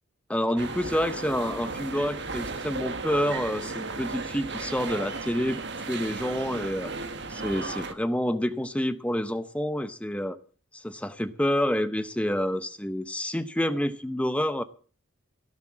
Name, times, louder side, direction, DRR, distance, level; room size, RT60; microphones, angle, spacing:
voice 1, 0.3-6.9 7.3-10.4 10.7-14.6, equal, 5° left, 0.7 m, -28 dB
sound 1, 0.6-7.9, right 3 dB, 55° right, 1.5 m, -35 dB
17.5 x 7.5 x 7.3 m
head